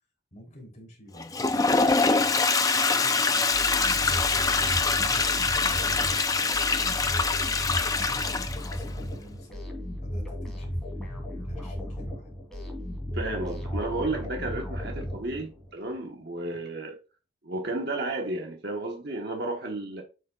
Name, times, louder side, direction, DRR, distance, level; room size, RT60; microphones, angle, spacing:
voice 1, 0.3-7.6 8.1-9.6 9.9-10.8 11.4-12.3, equal, 35° left, 3.2 m, -50 dB
Toilet flush, 1.2-8.8, left 4 dB, 20° left, 0.5 m, -24 dB
sound 1, 3.5-15.7, equal, ahead, 2.9 m, -35 dB
voice 2, 13.1-17.0 17.4-20.0, right 2 dB, 55° right, 1.2 m, -32 dB
9.3 x 6.4 x 2.4 m
head